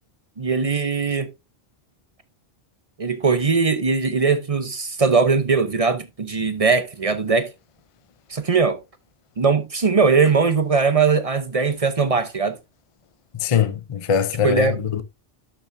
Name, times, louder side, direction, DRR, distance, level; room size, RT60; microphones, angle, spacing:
voice 1, 0.4-1.3 3.0-7.5 8.3-8.8 9.4-12.6 14.4-14.8, right 5 dB, 35° right, 0.8 m, -20 dB
voice 2, 13.4-15.0, left 8 dB, 40° left, 0.6 m, -22 dB
12.0 x 6.0 x 2.6 m
omnidirectional pair, 1.1 m